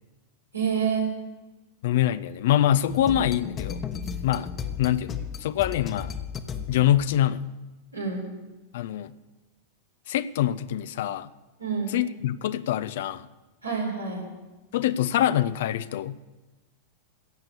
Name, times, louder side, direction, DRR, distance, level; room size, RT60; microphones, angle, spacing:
voice 1, 0.5-1.1 7.9-8.2 11.6-11.9 13.6-14.2, right 6 dB, 85° right, -3 dB, 4.2 m, -27 dB
voice 2, 1.8-3.8 4.2-6.2 6.7-7.5 8.7-9.1 10.1-11.3 11.9-13.3 14.7-16.2, left 11 dB, 55° left, 14 dB, 0.4 m, -25 dB
sound 1, 2.9-7.1, left 7 dB, 25° left, 1.0 m, -34 dB
16.5 x 6.5 x 6.9 m, 1.2 s
figure-of-eight pair, 90°, 0 cm